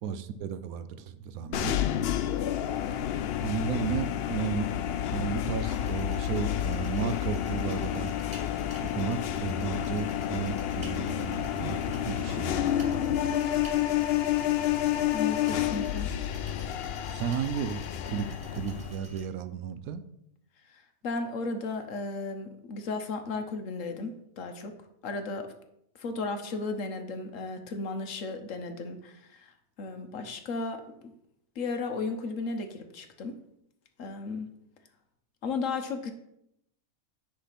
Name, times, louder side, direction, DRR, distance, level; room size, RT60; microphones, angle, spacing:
voice 1, 0.0-1.8 3.4-4.7 5.1-8.1 8.8-13.5 17.1-20.0, right 7 dB, 75° right, 11 dB, 1.0 m, -34 dB
sound 1, 1.5-18.9, left 11 dB, 80° left, 0.5 m, -30 dB
sound 2, 5.7-19.3, right 1 dB, 30° right, 1.9 m, -48 dB
voice 2, 15.1-16.1 20.7-24.7 25.0-25.5 26.0-29.5 29.8-31.1 31.6-33.3 34.0-34.5 35.4-36.1, left 3 dB, 60° left, 7 dB, 1.1 m, -35 dB
10.0 x 3.4 x 5.7 m, 0.77 s
omnidirectional pair, 1.6 m